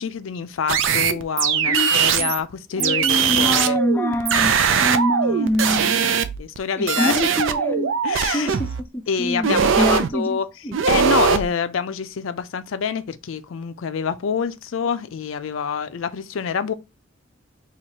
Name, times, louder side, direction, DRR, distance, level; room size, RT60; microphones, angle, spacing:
voice 1, 0.0-3.8 6.4-7.2 8.0-8.5 9.1-10.5 10.9-16.7, left 6 dB, 80° left, 0.4 m, -26 dB
sound 1, 0.7-2.4 2.8-6.6 6.9-8.8 9.4-10.1 10.7-11.4, right 7 dB, 70° right, 0.4 m, -20 dB
voice 2, 1.7-2.3 2.8-6.0 6.8-7.9 8.3-8.7 8.9-10.4 10.6-10.8, equal, 10° left, 0.5 m, -25 dB
4.5 x 2.4 x 2.8 m
head